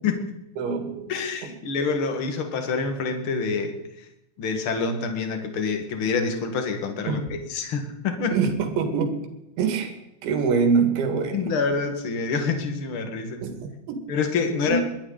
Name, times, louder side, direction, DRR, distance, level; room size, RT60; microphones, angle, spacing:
voice 1, 0.6-1.1 7.1-7.2 8.3-9.2 9.6-10.0 10.2-11.5 13.4-14.0 14.7-14.8, right 5 dB, 80° right, 6 dB, 4.4 m, -24 dB
voice 2, 1.1-4.1 4.4-8.4 11.3-13.5 14.1-14.8, left 4 dB, 55° left, 6 dB, 1.4 m, -27 dB
21.5 x 12.5 x 4.1 m, 0.89 s
omnidirectional pair, 5.2 m